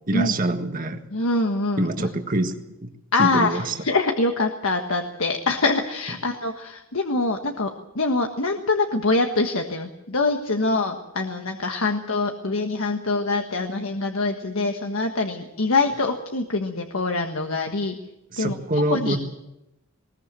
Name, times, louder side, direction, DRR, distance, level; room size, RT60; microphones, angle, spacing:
voice 1, 0.1-1.0 1.8-2.9 3.2-3.7 18.3-19.2, right 2 dB, 40° right, 6 dB, 1.7 m, -25 dB
voice 2, 1.1-2.1 3.1-18.0 18.4-19.2, left 3 dB, 80° left, 4 dB, 1.5 m, -24 dB
20.5 x 19.5 x 7.6 m, 0.90 s
head